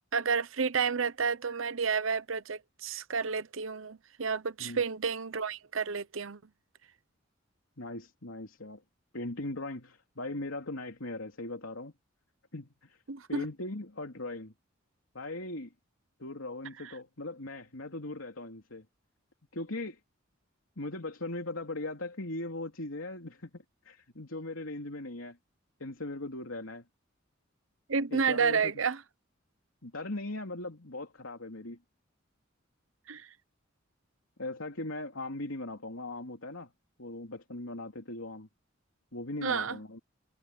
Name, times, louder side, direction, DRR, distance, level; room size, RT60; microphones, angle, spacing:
voice 1, 0.1-6.4 13.1-13.4 27.9-29.0 33.1-33.3 39.4-39.8, right 5 dB, 80° right, 0.9 m, -30 dB
voice 2, 7.8-8.8 9.1-11.9 12.5-13.0 13.3-14.5 15.1-15.7 16.2-18.8 19.5-20.0 20.8-25.4 25.8-26.8 28.1-28.8 29.8-31.8 34.4-36.7 37.0-38.5 39.1-40.0, left 2 dB, 85° left, 3.2 m, -39 dB
head